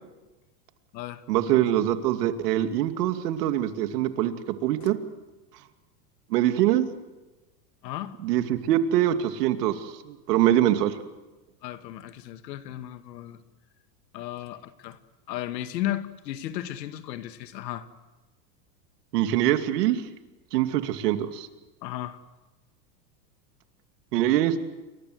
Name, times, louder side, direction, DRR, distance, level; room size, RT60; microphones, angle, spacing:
voice 1, 1.3-4.3 4.6-5.0 6.3-6.8 8.2-10.9 19.1-20.0 20.5-21.5 24.1-24.6, right 12 dB, 70° right, 8 dB, 2.5 m, -23 dB
voice 2, 7.8-8.2 11.6-13.4 14.1-15.0 15.3-17.9 21.8-22.2, left 13 dB, 85° left, 10 dB, 2.1 m, -34 dB
30.0 x 22.5 x 7.9 m, 1.1 s
supercardioid pair, 165°, 49 cm